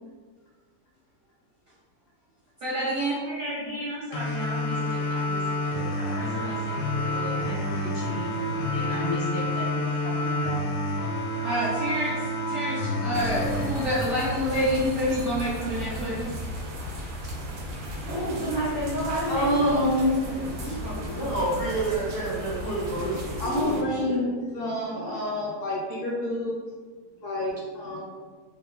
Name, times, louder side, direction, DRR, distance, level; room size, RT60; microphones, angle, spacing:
voice 1, 2.6-3.2 11.4-12.1 12.5-16.2 16.8-16.9 20.6-20.7, equal, 65° right, -8 dB, 0.7 m, -27 dB
voice 2, 3.2-10.6 18.1-21.4, equal, 30° left, -11 dB, 0.5 m, -34 dB
sound 1, 4.1-15.1, left 1 dB, 85° left, 1.1 m, -29 dB
sound 2, 13.1-23.8, equal, 85° right, 1.2 m, -35 dB
voice 3, 19.3-20.1 23.4-26.6 27.2-28.0, left 1 dB, 65° left, -6 dB, 0.9 m, -27 dB
voice 4, 21.2-24.2, right 2 dB, 30° right, -11 dB, 0.6 m, -29 dB
2.9 x 2.1 x 2.3 m, 1.5 s
omnidirectional pair, 1.7 m